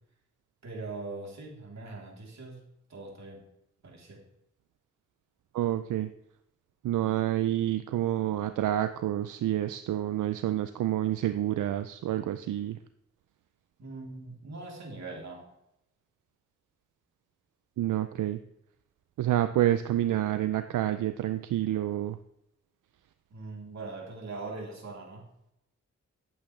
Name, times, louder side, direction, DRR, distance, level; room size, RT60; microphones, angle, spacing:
voice 1, 0.6-2.6 2.9-3.4 3.8-4.2 13.8-15.5 23.3-25.2, right 3 dB, 65° right, -1 dB, 3.3 m, -41 dB
voice 2, 5.5-6.1 6.8-12.8 17.8-18.4 19.2-22.2, right 12 dB, 90° right, 10 dB, 0.5 m, -28 dB
14.0 x 8.5 x 3.2 m, 0.80 s
cardioid pair, 60°, 30 cm